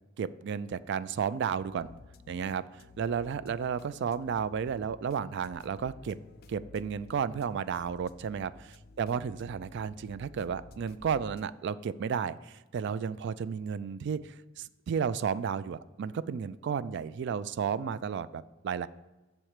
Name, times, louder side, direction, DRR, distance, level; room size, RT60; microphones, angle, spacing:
voice 1, 0.2-1.9 2.3-6.2 6.5-8.7 9.0-18.9, right 7 dB, 60° right, 15 dB, 0.3 m, -33 dB
sound 1, 1.6-11.4, left 3 dB, 50° left, 0.4 m, -53 dB
7.1 x 4.4 x 6.5 m, 1.1 s
head